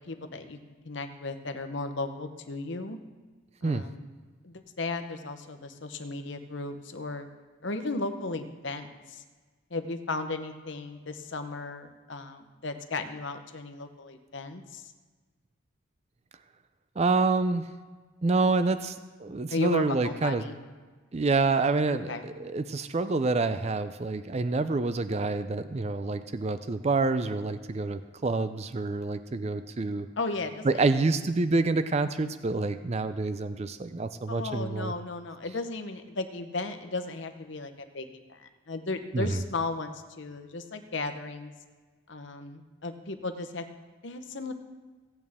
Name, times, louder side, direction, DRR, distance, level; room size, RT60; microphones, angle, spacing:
voice 1, 0.0-3.0 3.6-4.0 4.4-7.3 7.6-9.2 9.7-14.9 19.5-20.6 21.9-22.3 30.2-31.0 34.3-41.5 42.1-43.7 44.0-44.5, left 3 dB, 55° left, 8 dB, 0.9 m, -35 dB
voice 2, 17.0-17.6 18.2-20.4 21.1-30.1 30.6-34.9 39.1-39.4, right 3 dB, 30° right, 11 dB, 0.4 m, -27 dB
16.5 x 8.7 x 3.6 m, 1.4 s
head